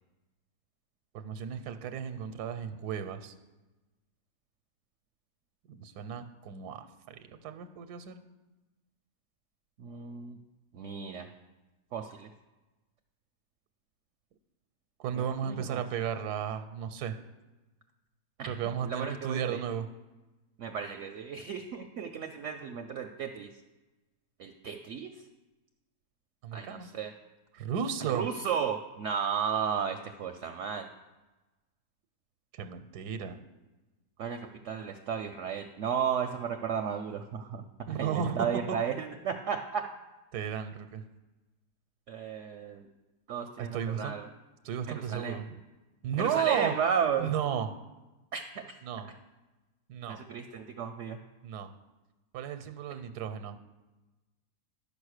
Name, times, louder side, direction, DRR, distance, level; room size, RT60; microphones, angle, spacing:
voice 1, 1.1-3.3 5.7-8.2 15.0-17.2 18.5-19.9 26.4-26.9 27.5-28.2 32.5-33.4 37.9-38.5 40.3-41.0 43.6-44.2 44.6-45.5 46.0-46.7 47.2-47.7 48.8-49.1 49.9-50.2 51.4-51.7 52.3-53.6, right 8 dB, 85° right, 9 dB, 1.2 m, -34 dB
voice 2, 9.8-10.4 10.7-11.3 11.9-12.3 15.1-15.8 18.4-18.5 18.8-19.6 20.6-23.5 24.4-25.1 26.5-27.1 28.1-30.9 34.2-34.4 34.6-37.6 38.0-39.8 42.1-42.9 43.3-44.3 44.9-45.4 46.2-47.3 48.3-48.8 50.0-51.2, right 7 dB, 65° right, 6 dB, 0.8 m, -34 dB
11.0 x 5.3 x 6.4 m, 1.1 s
omnidirectional pair, 1.7 m